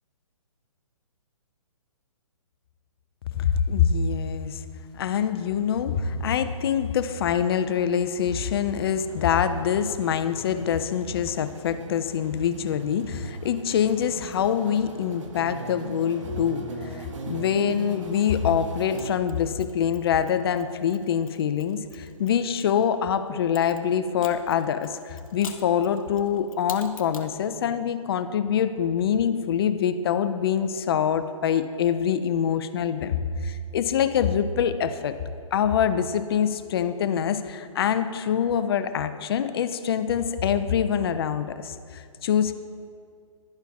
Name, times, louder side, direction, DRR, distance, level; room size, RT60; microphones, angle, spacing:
voice 1, 3.3-4.6 4.9-16.7 16.9-35.1 35.5-42.5, left 8 dB, 45° left, 11 dB, 0.4 m, -25 dB
sound 1, 5.8-19.1, right 3 dB, 65° right, 0.8 m, -40 dB
Mechanisms, 19.0-22.8 23.5-27.4, left 5 dB, 80° left, 0.7 m, -46 dB
11.5 x 4.4 x 2.3 m, 2.3 s
hypercardioid pair, 135°, 18 cm